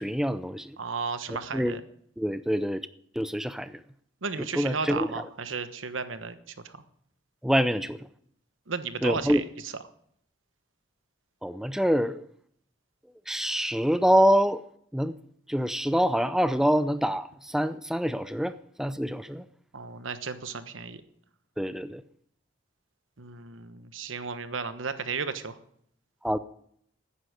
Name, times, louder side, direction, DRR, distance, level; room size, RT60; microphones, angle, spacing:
voice 1, 0.0-0.7 1.5-1.8 2.2-2.9 3.2-3.8 4.5-5.1 7.4-8.0 9.0-9.4 11.4-12.2 13.3-14.6 14.9-15.2 15.5-19.4 21.6-22.0 26.2-26.4, equal, ahead, 13 dB, 0.5 m, -25 dB
voice 2, 0.8-1.8 4.2-6.4 6.6-6.8 8.7-9.7 19.7-21.0 23.2-25.6, right 5 dB, 85° right, 11 dB, 1.2 m, -34 dB
10.0 x 9.8 x 9.6 m, 0.68 s
head